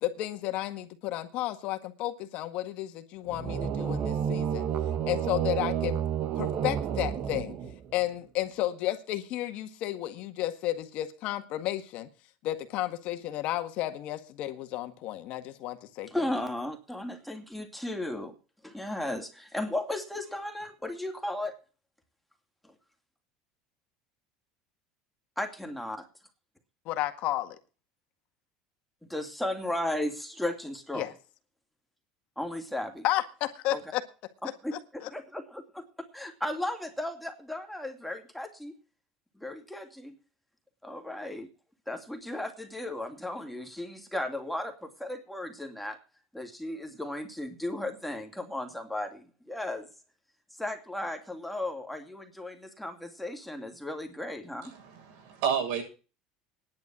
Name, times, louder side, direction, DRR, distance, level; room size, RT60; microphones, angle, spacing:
voice 1, 0.0-4.7 5.1-6.0 6.4-7.6 7.9-12.1 12.4-16.3 26.9-27.6 30.9-31.1 33.0-34.0 34.7-35.1, left 14 dB, 60° left, 1.8 m, -32 dB
sound 1, 3.3-8.0, right 9 dB, 50° right, 1.6 m, -30 dB
voice 2, 16.1-18.4 18.6-21.5 25.4-26.1 29.1-31.0 32.4-33.0 33.7-33.8 34.6-38.7 39.4-40.1 40.8-41.5 41.9-46.0 46.3-49.9 50.6-54.7, left 1 dB, 5° left, 2.7 m, -35 dB
voice 3, 54.6-55.8, right 7 dB, 75° right, 7.4 m, -31 dB
10.5 x 10.5 x 6.2 m
supercardioid pair, 105°, 2 cm